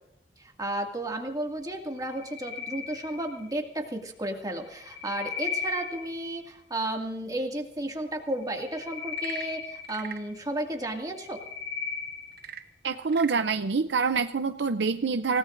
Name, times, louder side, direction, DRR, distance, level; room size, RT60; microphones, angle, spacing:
voice 1, 0.4-11.4, right 1 dB, 20° right, 2 dB, 2.3 m, -33 dB
sound 1, 2.0-3.7 4.6-6.4 8.4-10.5 11.0-12.5, left 6 dB, 65° left, 4.3 m, -37 dB
Frog / Percussion / Wood, 9.0-10.3 12.3-13.5, right 9 dB, 60° right, 1.0 m, -43 dB
voice 2, 12.8-15.4, right 4 dB, 75° right, 9 dB, 0.6 m, -26 dB
27.5 x 17.5 x 2.6 m, 0.80 s
head